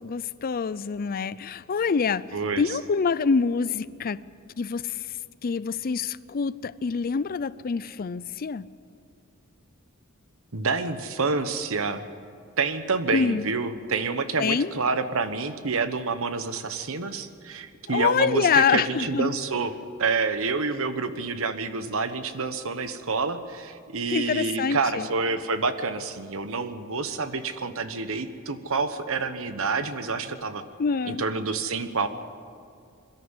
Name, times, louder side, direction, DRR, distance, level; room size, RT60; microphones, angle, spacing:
voice 1, 0.0-2.2 2.6-4.2 4.6-5.0 5.4-8.7 13.1-13.5 14.4-14.7 17.9-19.3 24.1-25.1 30.8-31.2, left 5 dB, 40° left, 18 dB, 0.4 m, -25 dB
voice 2, 2.3-2.8 10.5-12.0 12.6-19.7 20.0-30.6 31.1-32.1, right 4 dB, 65° right, 10 dB, 1.2 m, -28 dB
22.0 x 13.5 x 9.8 m, 2.3 s
head